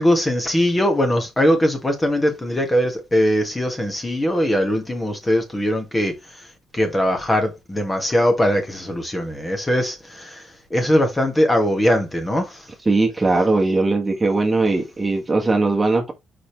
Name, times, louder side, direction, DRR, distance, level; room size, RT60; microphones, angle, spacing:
voice 1, 0.0-6.2 6.7-10.4 10.7-12.6, equal, 15° left, 2.0 m, -20 dB
voice 2, 12.8-16.1, right 3 dB, 20° right, 1.6 m, -19 dB
5.2 x 4.1 x 4.4 m
cardioid pair, 90°, 0 cm